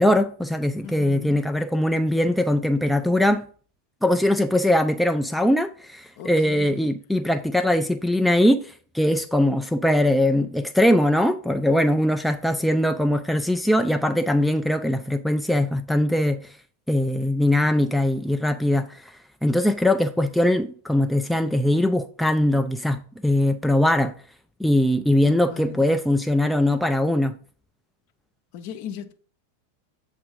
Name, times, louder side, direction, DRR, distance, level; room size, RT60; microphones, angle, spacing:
voice 1, 0.0-3.5 4.0-16.5 16.9-19.0 19.4-24.1 24.6-27.4, left 1 dB, ahead, 0.3 m, -21 dB
voice 2, 0.8-1.5 6.2-6.8 25.2-26.0 28.5-29.1, left 8 dB, 45° left, 0.6 m, -38 dB
7.7 x 2.6 x 5.1 m
figure-of-eight pair, 90°, 0 cm